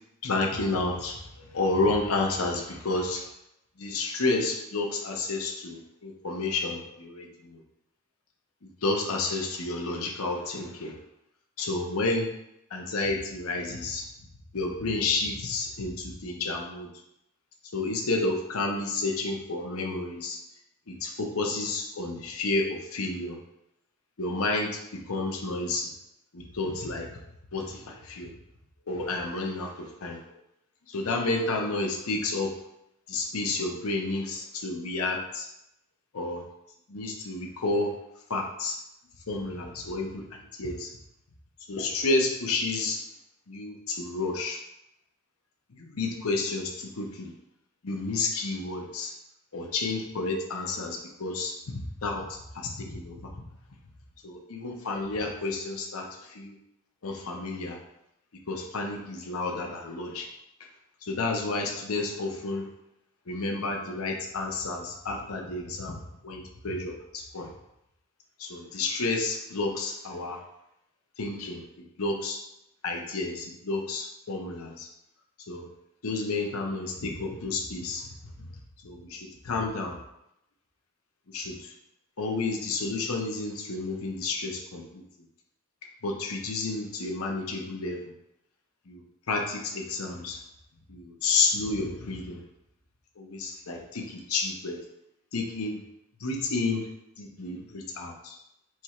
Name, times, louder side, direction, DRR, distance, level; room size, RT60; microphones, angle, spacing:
voice 1, 0.2-3.2 3.8-7.6 8.8-11.0 11.6-12.3 12.7-14.0 14.5-16.9 17.7-20.4 20.9-23.4 24.2-24.8 25.1-25.9 26.3-27.1 27.5-28.3 28.9-30.2 30.9-32.5 33.1-35.5 36.1-36.4 36.9-37.9 38.3-38.8 39.3-40.2 40.6-40.9 41.7-43.0 43.5-44.6 45.7-47.3 47.8-49.1 49.5-53.3 54.2-56.5 57.0-57.8 58.5-60.3 61.0-62.6 63.3-65.9 66.2-67.5 68.4-70.4 71.2-72.4 72.8-74.9 75.5-75.7 76.0-78.1 78.4-78.5 78.8-80.0 81.3-81.7 82.2-85.0 86.0-88.0 88.9-90.4 90.9-92.4 93.2-94.8 95.3-95.8 96.2-96.9 97.2-98.4, left 3 dB, 80° left, 2 dB, 0.8 m, -30 dB
4.7 x 2.4 x 4.2 m, 0.81 s
head